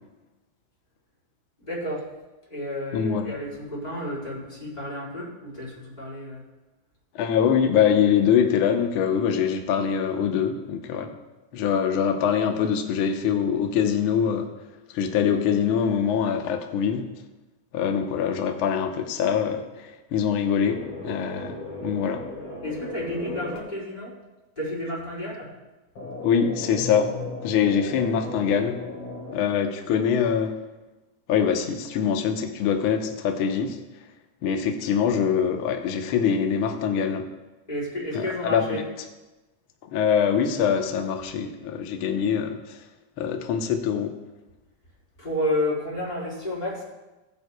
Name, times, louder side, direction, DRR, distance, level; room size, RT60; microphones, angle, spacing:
voice 1, 1.6-2.0 2.5-6.4 22.6-24.1 24.6-25.5 37.7-38.8 45.2-46.8, left 1 dB, 10° left, -7 dB, 4.4 m, -31 dB
voice 2, 2.9-3.3 7.1-11.1 11.5-14.5 14.9-17.0 17.7-19.6 20.1-21.5 21.8-22.2 26.2-27.1 27.4-28.8 29.3-30.5 31.3-33.8 34.4-37.3 38.1-38.8 39.9-42.8 43.2-44.1, left 7 dB, 80° left, 3 dB, 1.2 m, -23 dB
sound 1, 20.6-23.6 26.0-29.4, left 2 dB, 50° left, 5.1 m, -36 dB
20.0 x 9.5 x 2.3 m, 1.1 s
omnidirectional pair, 3.9 m